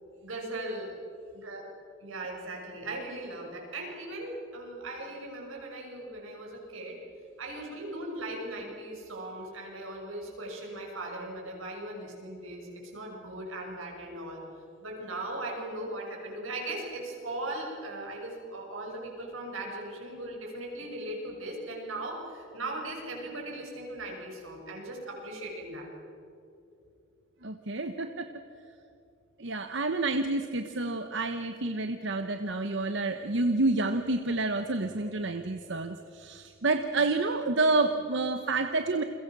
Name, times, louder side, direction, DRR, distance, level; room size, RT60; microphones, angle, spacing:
voice 1, 0.2-0.9 1.3-1.6 2.0-7.0 7.4-14.4 14.8-25.9, right 1 dB, 90° right, 0 dB, 6.8 m, -38 dB
voice 2, 27.4-28.3 29.4-39.0, right 2 dB, 65° right, 7 dB, 1.1 m, -29 dB
29.5 x 23.0 x 6.2 m, 2.7 s
head